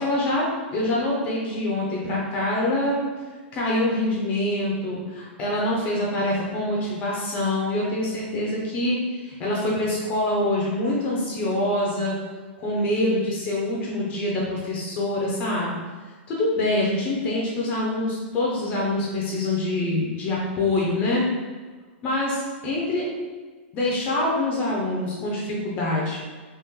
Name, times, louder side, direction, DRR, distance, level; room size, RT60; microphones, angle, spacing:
voice 1, 0.0-3.0 3.5-12.2 12.6-15.8 16.3-21.3 22.0-23.1 23.7-26.2, left 1 dB, 20° left, -4 dB, 0.5 m, -25 dB
3.0 x 2.9 x 3.6 m, 1.4 s
supercardioid pair, 175°, 7 cm